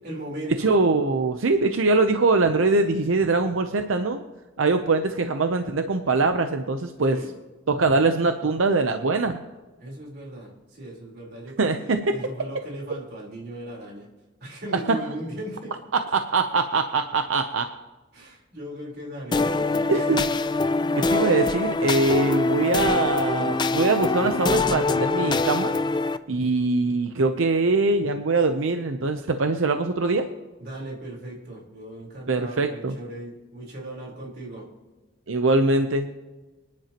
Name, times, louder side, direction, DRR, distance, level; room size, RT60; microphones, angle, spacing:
voice 1, 0.0-0.7 7.0-7.3 9.8-14.1 14.4-15.7 18.1-20.2 20.9-21.0 30.6-34.7, right 1 dB, 55° right, -3 dB, 4.0 m, -38 dB
voice 2, 0.6-4.2 4.6-7.2 7.7-9.4 11.6-12.2 14.9-15.1 15.9-17.7 19.9-20.3 21.1-25.7 26.3-30.3 32.3-33.0 35.3-36.1, right 3 dB, 90° right, 7 dB, 0.7 m, -22 dB
sound 1, 19.3-26.2, left 3 dB, 20° left, 0.4 m, -24 dB
24.5 x 10.5 x 3.0 m, 1.2 s
head